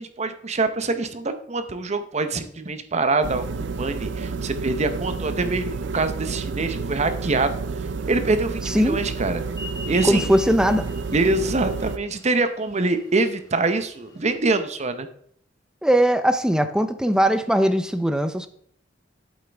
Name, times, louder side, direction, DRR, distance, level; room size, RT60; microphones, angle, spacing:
voice 1, 0.0-7.6 8.1-9.4 9.9-10.3 11.1-15.1, right 3 dB, 35° right, 0.8 m, -24 dB
sound 1, 3.2-12.0, right 4 dB, 70° right, 0.5 m, -30 dB
voice 2, 8.7-9.0 10.0-10.9 15.8-18.5, equal, 5° right, 0.6 m, -20 dB
sound 2, 9.5-14.5, left 2 dB, 20° left, 1.6 m, -40 dB
8.2 x 8.1 x 3.4 m
head